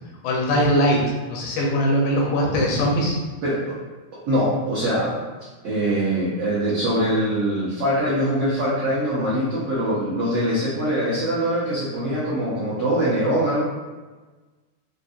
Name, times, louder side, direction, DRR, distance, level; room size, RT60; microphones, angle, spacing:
voice 1, 0.2-1.0 1.3-3.2, equal, 85° left, -2 dB, 2.4 m, -20 dB
voice 2, 3.4-3.8 4.3-5.2 5.6-13.6, right 1 dB, 75° right, -9 dB, 1.3 m, -23 dB
5.8 x 2.3 x 2.6 m, 1.3 s
omnidirectional pair, 3.7 m